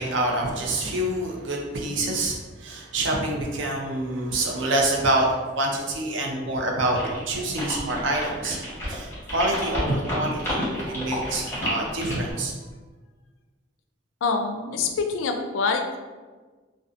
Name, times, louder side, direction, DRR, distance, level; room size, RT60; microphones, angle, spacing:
voice 1, 0.0-7.0 7.3-8.6 8.9-12.5, right 1 dB, 70° right, 0 dB, 0.5 m, -26 dB
sound 1, 7.0-12.3, left 1 dB, 15° left, 0.8 m, -31 dB
voice 2, 14.2-16.0, left 4 dB, 80° left, 5 dB, 0.3 m, -25 dB
2.5 x 2.3 x 2.4 m, 1.3 s
head